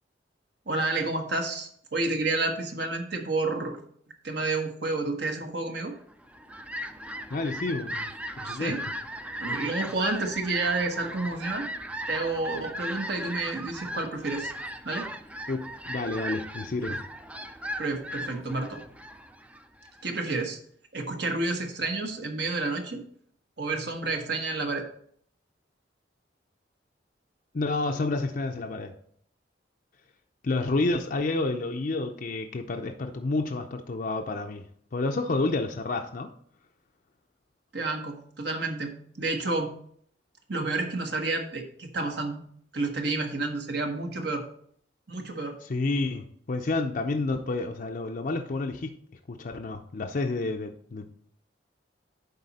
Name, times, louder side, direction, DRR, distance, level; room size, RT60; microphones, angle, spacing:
voice 1, 0.7-3.8 4.2-5.9 8.4-8.8 9.4-11.7 12.1-14.5 14.8-15.1 17.8-18.8 20.0-20.6 20.9-23.0 23.6-24.9 37.7-39.7 40.5-42.4 42.7-44.5 45.1-45.6, right 3 dB, 65° right, 3 dB, 1.3 m, -30 dB
Fowl, 6.1-20.0, equal, 5° right, 0.4 m, -37 dB
voice 2, 7.3-8.8 15.5-17.0 27.5-28.9 30.4-34.6 34.9-36.3 45.6-49.0 49.3-51.2, left 3 dB, 50° left, 4 dB, 0.5 m, -30 dB
10.5 x 4.2 x 4.1 m, 0.62 s
head